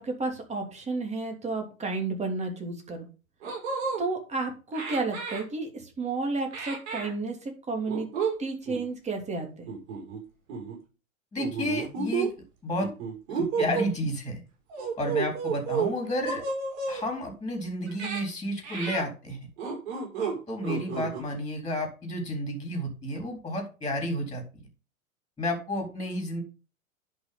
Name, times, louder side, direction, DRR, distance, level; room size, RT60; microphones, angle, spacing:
voice 1, 0.0-3.1 4.0-8.1 8.4-9.7, right 3 dB, 15° right, 3 dB, 3.1 m, -32 dB
sound 1, 2.9-3.0 3.4-4.0 4.7-5.4 6.5-7.1 7.9-8.3 8.7-8.8 9.7-10.2 10.5-10.7 11.4-12.3 12.8-13.9 14.7-15.9 16.2-17.0 17.9-18.2 18.6-19.0 19.6-20.4 20.6-21.2, right 5 dB, 55° right, 5.4 m, -31 dB
voice 2, 11.3-12.3 12.6-12.9 13.3-14.4 15.0-16.4 16.9-19.5 20.5-24.7 25.4-26.4, equal, 10° left, 3 dB, 4.0 m, -31 dB
10.5 x 5.8 x 5.3 m, 0.33 s
hypercardioid pair, 105°, 42 cm